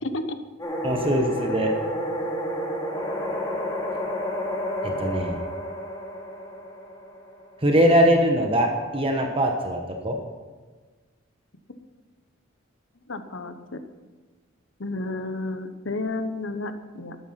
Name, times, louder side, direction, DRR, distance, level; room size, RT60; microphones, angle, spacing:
voice 1, 0.0-0.4 13.1-13.8 14.8-17.2, left 2 dB, 65° left, 9 dB, 1.0 m, -31 dB
sound 1, 0.6-7.6, left 1 dB, 20° left, 2.5 m, -30 dB
voice 2, 0.8-1.7 4.8-5.4 7.6-10.2, equal, 25° right, 3 dB, 1.2 m, -22 dB
12.5 x 10.5 x 5.8 m, 1.4 s
head